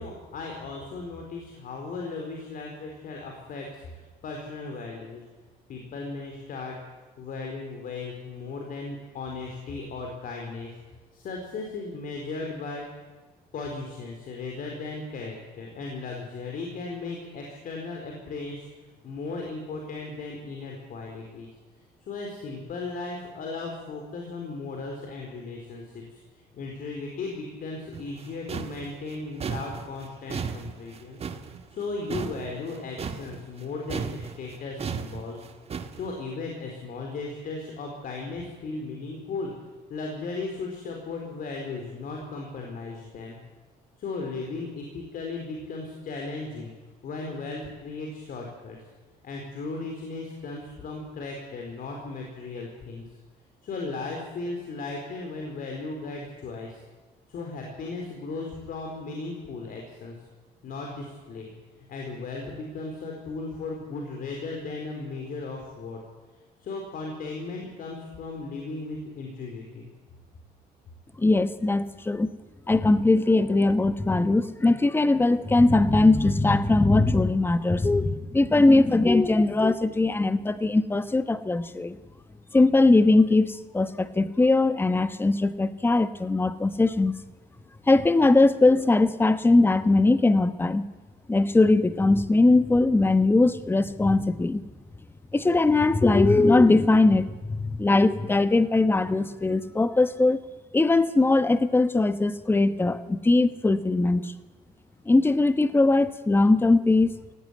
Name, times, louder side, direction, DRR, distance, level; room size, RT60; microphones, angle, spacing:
voice 1, 0.0-5.2 5.7-6.8 7.2-10.7 11.1-13.1 13.5-21.5 22.1-35.4 35.9-39.5 39.9-43.4 44.0-46.7 47.0-48.8 49.2-53.2 53.6-56.8 57.3-60.1 60.6-61.5 61.9-66.0 66.6-69.9, left 3 dB, 55° left, 1 dB, 4.4 m, -36 dB
sound 1, 27.9-33.6 33.9-36.1, right 6 dB, 35° right, 1.7 m, -35 dB
voice 2, 71.2-72.3 72.7-82.0 82.5-87.2 87.9-90.9 91.3-94.6 95.3-100.4 100.7-104.3 105.1-107.1, left 2 dB, 15° left, 12 dB, 1.1 m, -20 dB
17.5 x 17.0 x 9.4 m, 1.3 s
cardioid pair, 110°, 17 cm